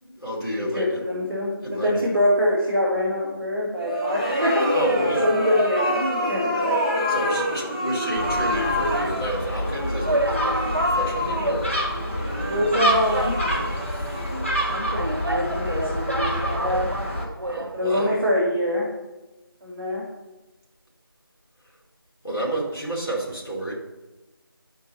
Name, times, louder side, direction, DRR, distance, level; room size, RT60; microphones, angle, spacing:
voice 1, 0.0-1.0 1.6-2.0 4.7-5.3 7.1-10.3 10.5-11.8 17.5-18.1 22.2-23.7, right 1 dB, 80° left, -5 dB, 2.8 m, -30 dB
voice 2, 0.6-4.7 5.2-6.8 12.4-13.4 14.1-16.9 17.7-18.9 19.6-20.0, equal, 10° right, -11 dB, 1.1 m, -24 dB
sound 1, 3.8-14.8, left 1 dB, 20° left, 0.7 m, -27 dB
Gull seagull, 8.2-17.2, equal, 35° left, 1.2 m, -28 dB
sound 2, 8.3-9.3 9.7-9.8 10.0-12.1 12.4-12.5 13.1-13.8 14.6-17.8 18.0-18.1, right 1 dB, 65° right, 0.8 m, -30 dB
9.7 x 4.5 x 4.1 m, 1.0 s
figure-of-eight pair, 170°, 12 cm